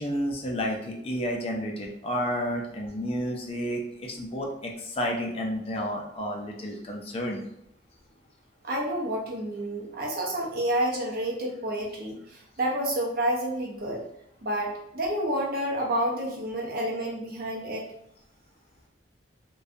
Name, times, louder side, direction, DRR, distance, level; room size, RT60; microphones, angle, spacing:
voice 1, 0.0-7.5, equal, 30° left, 0 dB, 0.4 m, -31 dB
voice 2, 8.6-14.0 14.4-17.8, right 1 dB, 50° right, -2 dB, 0.6 m, -29 dB
2.6 x 2.2 x 2.4 m, 0.76 s
head